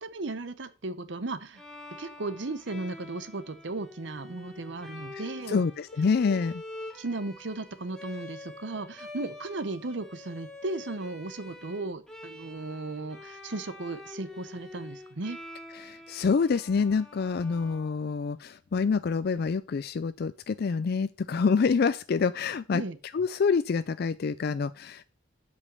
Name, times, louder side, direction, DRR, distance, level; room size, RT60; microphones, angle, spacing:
voice 1, 0.0-1.6 2.0-5.6 6.3-6.4 6.9-15.4 22.7-23.0, right 2 dB, 70° right, 13 dB, 0.9 m, -36 dB
Bowed string instrument, 1.5-18.5, left 2 dB, 5° left, 1.2 m, -46 dB
voice 2, 5.5-6.5 15.8-22.8 23.1-25.0, left 5 dB, 55° left, 14 dB, 0.4 m, -27 dB
8.3 x 5.2 x 6.8 m, 0.35 s
head